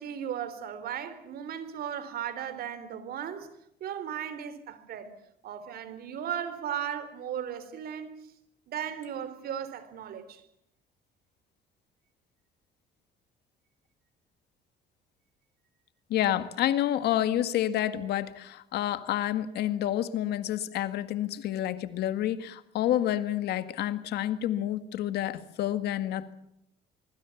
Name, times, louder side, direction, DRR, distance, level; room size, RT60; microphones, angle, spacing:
voice 1, 0.0-3.5 3.8-5.1 5.4-8.3 8.7-10.4, right 9 dB, 65° right, 3.6 m, -36 dB
voice 2, 16.1-26.3, left 12 dB, 75° left, 1.9 m, -29 dB
24.5 x 24.0 x 7.2 m
cardioid pair, 110°, 17 cm